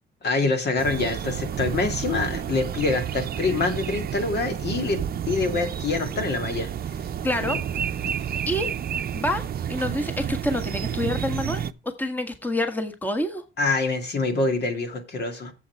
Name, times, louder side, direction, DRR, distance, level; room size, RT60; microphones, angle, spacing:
voice 1, 0.2-6.7 7.4-7.6 8.2-8.3 13.6-15.5, left 3 dB, 55° left, 2.4 m, -25 dB
sound 1, 0.8-11.7, right 9 dB, 50° right, 0.7 m, -30 dB
voice 2, 7.2-8.2 8.5-8.7 9.1-9.4 9.7-13.4, left 1 dB, 10° left, 1.5 m, -28 dB
8.7 x 7.8 x 4.7 m
cardioid pair, 90°, 20 cm